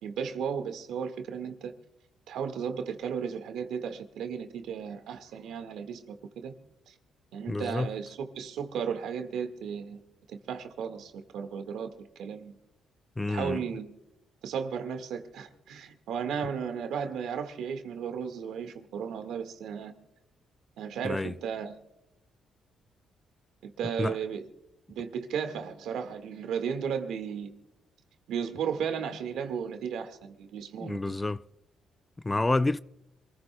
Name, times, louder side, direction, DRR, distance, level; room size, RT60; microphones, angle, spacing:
voice 1, 0.0-1.7 2.3-6.5 6.9-7.0 7.3-10.0 10.3-11.9 12.2-12.5 13.3-13.9 14.4-19.9 20.8-21.8 23.6-24.5 24.9-27.5 28.3-31.1, right 7 dB, 80° right, 1.7 m, -35 dB
voice 2, 7.5-7.9 13.2-13.6 21.0-21.3 24.0-24.2 30.8-31.4 32.2-32.8, left 2 dB, 15° left, 0.4 m, -28 dB
27.0 x 15.5 x 2.2 m
cardioid pair, 90°, 0 cm